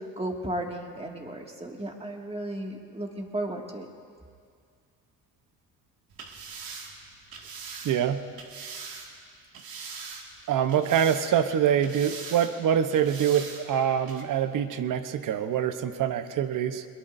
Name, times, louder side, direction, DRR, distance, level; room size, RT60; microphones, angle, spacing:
voice 1, 0.2-3.9, right 1 dB, 15° right, 1 dB, 2.1 m, -34 dB
sound 1, 6.1-9.1 9.5-10.4 10.7-11.5 11.8-12.5 12.9-13.6 14.1-14.2, right 5 dB, 75° right, 2.2 m, -41 dB
voice 2, 7.8-8.2 10.5-16.8, right 9 dB, 60° right, 10 dB, 1.0 m, -25 dB
22.0 x 21.5 x 2.7 m, 2.2 s
cardioid pair, 90°, 36 cm